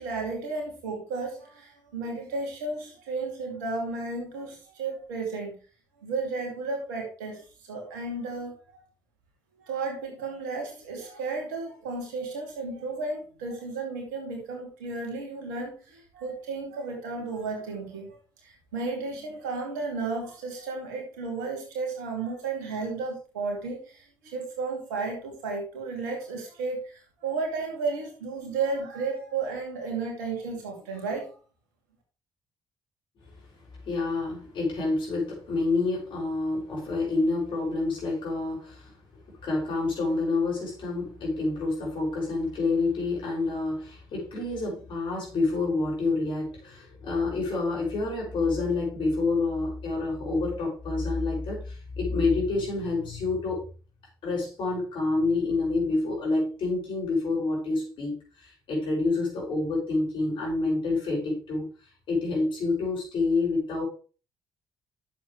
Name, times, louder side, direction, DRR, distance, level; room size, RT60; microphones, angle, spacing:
voice 1, 0.0-5.6 6.0-8.8 9.6-31.3, right 4 dB, 75° right, 1 dB, 2.7 m, -33 dB
voice 2, 33.8-38.9 39.4-53.6 54.2-61.7 62.1-63.8, left 3 dB, 60° left, -2 dB, 5.9 m, -28 dB
10.5 x 7.4 x 3.4 m, 0.36 s
figure-of-eight pair, 45°, 10 cm